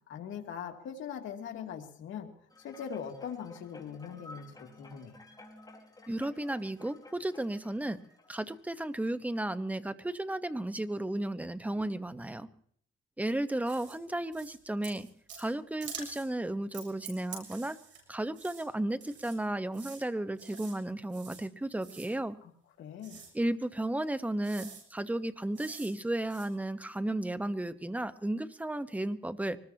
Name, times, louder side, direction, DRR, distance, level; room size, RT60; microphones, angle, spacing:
voice 1, 0.1-2.3 2.6-5.2 22.4-22.5 22.8-23.2, left 8 dB, 80° left, 2 dB, 2.6 m, -41 dB
sound 1, 2.5-9.1 9.6-9.7, left 2 dB, 20° left, 4.8 m, -53 dB
voice 2, 6.1-8.0 8.3-12.5 13.2-15.1 15.4-17.8 18.1-22.4 23.3-29.6, right 1 dB, 5° right, 11 dB, 1.2 m, -34 dB
sound 2, 13.7-14.0 14.3-14.6 14.8-15.5 15.8-16.3 16.7-18.0 18.3-18.6 19.0-19.4 19.7-20.0 20.4-20.8 21.1-21.4 21.8-22.1 23.0-23.3 24.0-24.1 24.4-24.8 25.5-25.9 26.2-26.5, right 6 dB, 70° right, 7.3 m, -47 dB
24.5 x 20.0 x 2.9 m, 0.64 s
cardioid pair, 90°, 20 cm